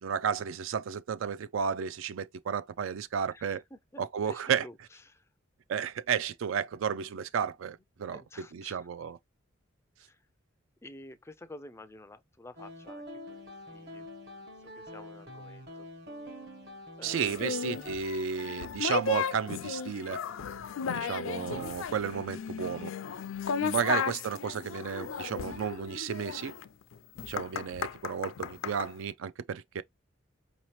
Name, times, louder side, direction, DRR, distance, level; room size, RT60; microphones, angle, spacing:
voice 1, 0.0-3.6 4.0-4.6 5.7-9.2 17.0-20.2 20.9-22.9 23.6-26.5 27.2-29.8, right 7 dB, 75° right, 0.4 m, -33 dB
voice 2, 3.3-5.3 8.1-8.9 10.0-10.3 10.8-14.1 14.4-15.9 17.0-17.6 23.7-23.9 24.1-24.3, left 1 dB, 15° left, 0.3 m, -51 dB
sound 1, 12.6-18.0, left 1 dB, 50° right, 1.1 m, -45 dB
sound 2, 17.2-28.9, left 6 dB, 80° left, 0.4 m, -35 dB
4.8 x 2.8 x 3.0 m
head